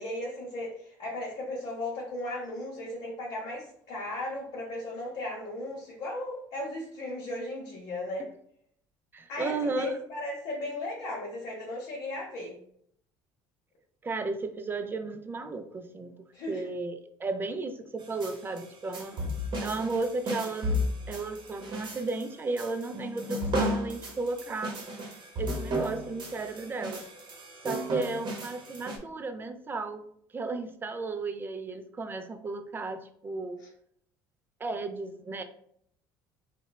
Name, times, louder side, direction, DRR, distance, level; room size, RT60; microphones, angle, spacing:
voice 1, 0.0-8.3 9.3-12.6 16.3-16.6 33.6-33.7, left 1 dB, 60° left, -3 dB, 0.7 m, -36 dB
voice 2, 9.1-10.0 14.0-16.1 16.5-19.2 19.6-20.8 21.1-24.8 25.4-27.0 27.6-30.1 30.3-33.6 34.6-35.4, right 3 dB, 20° right, 8 dB, 0.3 m, -34 dB
sound 1, 18.0-29.0, equal, 45° right, 0.8 m, -34 dB
2.9 x 2.1 x 2.2 m, 0.66 s
hypercardioid pair, 70°, 10 cm